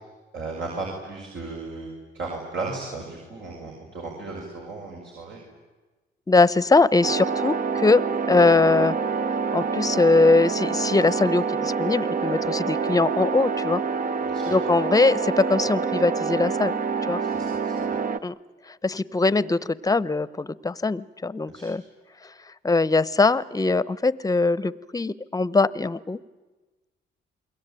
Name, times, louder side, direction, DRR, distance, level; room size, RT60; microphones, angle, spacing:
voice 1, 0.3-1.9 2.1-5.4 14.2-14.5 17.2-18.0 21.5-21.7, right 3 dB, 70° right, -1 dB, 6.3 m, -35 dB
voice 2, 6.3-8.0 8.3-8.9 9.5-13.8 14.5-16.8 17.1-17.2 18.2-18.4 18.7-21.8 22.2-22.3 22.6-26.2, left 3 dB, 20° left, 19 dB, 0.9 m, -21 dB
sound 1, 7.0-18.2, right 5 dB, 45° right, 1.0 m, -27 dB
28.5 x 22.0 x 9.1 m, 1.2 s
cardioid pair, 90°, 20 cm